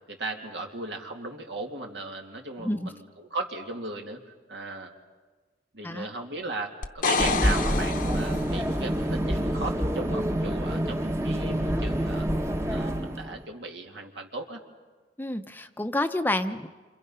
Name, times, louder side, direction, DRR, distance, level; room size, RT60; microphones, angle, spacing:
voice 1, 0.1-4.9 5.7-12.3 12.7-14.6, right 3 dB, 80° right, 2 dB, 2.6 m, -37 dB
voice 2, 2.6-2.9 5.8-6.1 15.2-16.7, left 1 dB, 10° left, 8 dB, 0.7 m, -29 dB
sound 1, 6.8-8.7 12.5-12.6, left 4 dB, 50° left, 0.9 m, -28 dB
sound 2, 7.2-13.4, equal, 15° right, 1.0 m, -27 dB
28.5 x 26.0 x 5.6 m, 1.4 s
head